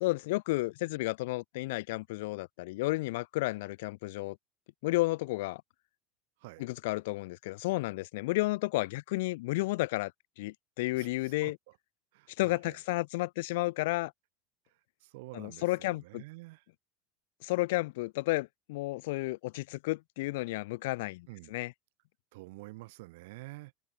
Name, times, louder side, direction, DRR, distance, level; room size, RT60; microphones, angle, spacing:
voice 1, 0.0-4.4 4.8-5.6 6.6-10.1 10.4-11.6 12.4-14.1 15.3-16.2 17.4-21.7, left 21 dB, 80° left, 1.4 m, -32 dB
voice 2, 10.9-11.8 12.1-12.8 14.7-16.6 21.3-21.6 22.3-23.7, right 22 dB, 75° right, 7.7 m, -49 dB
supercardioid pair, 155°, 0 cm